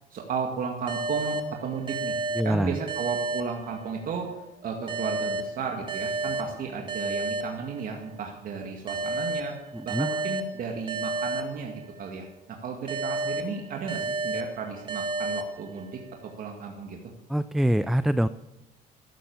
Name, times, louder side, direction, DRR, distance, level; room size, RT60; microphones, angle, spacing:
voice 1, 0.1-9.6 9.8-16.0 16.4-17.0, right 5 dB, 55° right, 2 dB, 2.1 m, -34 dB
sound 1, 0.9-4.2 4.9-8.2 8.9-12.2 12.9-16.2, right 2 dB, 30° right, 1.9 m, -32 dB
voice 2, 2.4-2.8 9.9-10.1 17.3-18.3, equal, ahead, 14 dB, 0.4 m, -24 dB
13.0 x 10.0 x 7.1 m, 0.99 s
cardioid pair, 110°, 17 cm